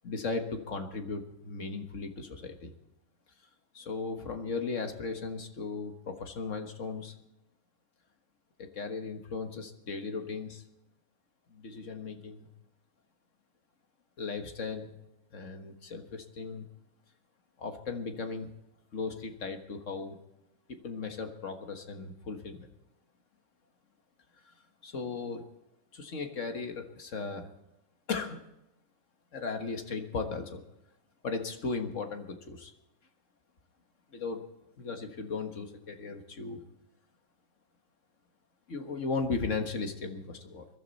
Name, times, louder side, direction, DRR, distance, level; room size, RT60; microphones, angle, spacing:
voice 1, 0.0-2.7 3.7-7.2 8.6-10.6 11.5-12.5 14.2-15.0 15.3-16.7 17.6-18.5 18.9-20.2 20.7-22.7 24.8-25.4 25.9-27.5 28.1-28.4 29.3-30.6 31.2-32.7 34.1-34.4 34.8-36.6 38.7-40.7, left 4 dB, 60° left, 6 dB, 1.8 m, -36 dB
22.0 x 12.5 x 4.1 m, 0.90 s
omnidirectional pair, 1.4 m